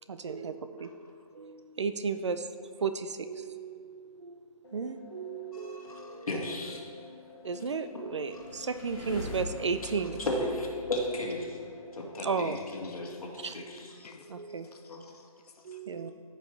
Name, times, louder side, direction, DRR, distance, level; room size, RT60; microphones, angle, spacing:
voice 1, 0.1-1.1 1.3-2.5 2.8-4.4 4.7-6.3 7.4-10.2 12.2-12.6 13.4-13.5 14.3-14.9 15.6-16.1, right 5 dB, 50° right, 10 dB, 0.4 m, -34 dB
sound 1, 4.6-13.5, left 4 dB, 45° left, 1.0 m, -49 dB
voice 2, 5.5-6.8 8.3-8.4 10.3-11.6 11.9-13.9 14.9-15.0, left 1 dB, 65° left, -1 dB, 2.0 m, -35 dB
sound 2, 8.1-11.7, left 1 dB, 15° left, 1.8 m, -43 dB
voice 3, 12.8-13.5 13.9-15.8, left 4 dB, 85° left, 5 dB, 0.8 m, -56 dB
14.0 x 5.3 x 3.3 m, 2.4 s
hypercardioid pair, 175°, 19 cm